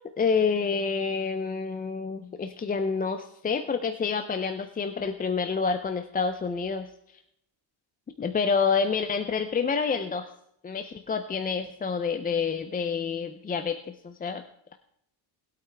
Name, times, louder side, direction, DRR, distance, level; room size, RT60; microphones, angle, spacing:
voice 1, 0.2-6.9 8.2-10.3 10.6-14.4, left 5 dB, 20° left, 7 dB, 0.4 m, -28 dB
19.5 x 8.5 x 3.3 m, 0.75 s
cardioid pair, 165°, 47 cm